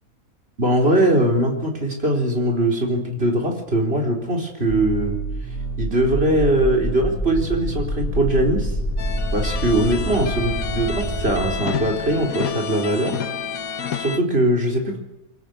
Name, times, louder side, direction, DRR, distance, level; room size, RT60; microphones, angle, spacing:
voice 1, 0.6-5.2 5.8-8.7 9.3-13.1 14.0-15.0, right 1 dB, 45° right, 1 dB, 4.5 m, -21 dB
sound 1, 4.7-11.6, right 1 dB, 10° left, 3.7 m, -27 dB
sound 2, 9.0-14.2, left 6 dB, 75° left, 1.5 m, -29 dB
24.0 x 16.0 x 9.5 m, 0.90 s
omnidirectional pair, 1.5 m